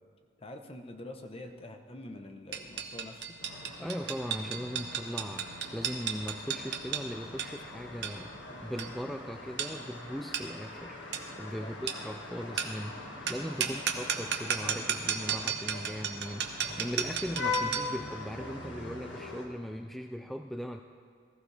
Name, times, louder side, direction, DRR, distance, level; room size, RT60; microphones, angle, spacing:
voice 1, 0.4-3.4 11.6-11.7 13.6-13.8, left 1 dB, 30° left, 5 dB, 1.0 m, -45 dB
sound 1, 2.5-18.0, right 7 dB, 60° right, 1.1 m, -35 dB
sound 2, 3.4-19.5, left 3 dB, 75° left, 1.9 m, -42 dB
voice 2, 3.8-8.3 8.6-11.0 11.4-20.8, equal, ahead, 5 dB, 0.3 m, -39 dB
19.5 x 14.5 x 3.4 m, 2.3 s
head